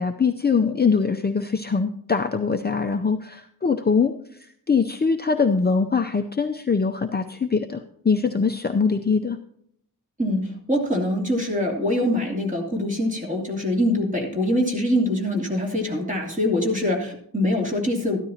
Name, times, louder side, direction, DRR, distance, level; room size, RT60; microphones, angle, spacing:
voice 1, 0.0-4.1 4.7-9.4, left 5 dB, 25° left, 5 dB, 0.6 m, -22 dB
voice 2, 10.2-18.2, left 1 dB, 20° right, 0 dB, 3.0 m, -24 dB
13.5 x 12.5 x 2.8 m, 0.66 s
wide cardioid pair, 165°, 36 cm